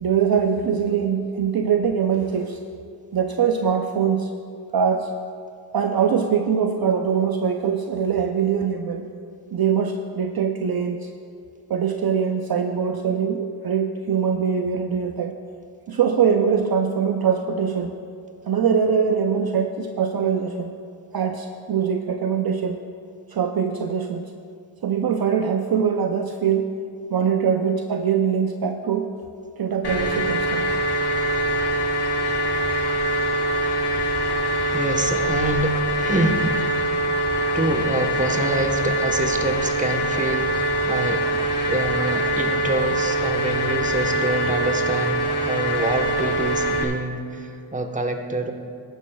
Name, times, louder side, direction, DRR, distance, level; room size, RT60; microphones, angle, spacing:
voice 1, 0.0-2.6 3.1-4.3 4.7-5.1 5.7-9.1 9.5-11.1 11.7-15.4 15.9-17.9 18.5-20.7 21.1-22.8 23.3-24.2 24.8-26.8 27.1-29.1 29.6-30.7, right 7 dB, 50° right, 5 dB, 0.7 m, -22 dB
sound 1, 29.8-46.8, right 1 dB, 55° left, 1.4 m, -23 dB
voice 2, 34.7-36.5 37.5-41.3 41.7-48.5, right 2 dB, 15° right, 5 dB, 1.2 m, -26 dB
15.0 x 11.5 x 2.3 m, 2.3 s
cardioid pair, 50°, 46 cm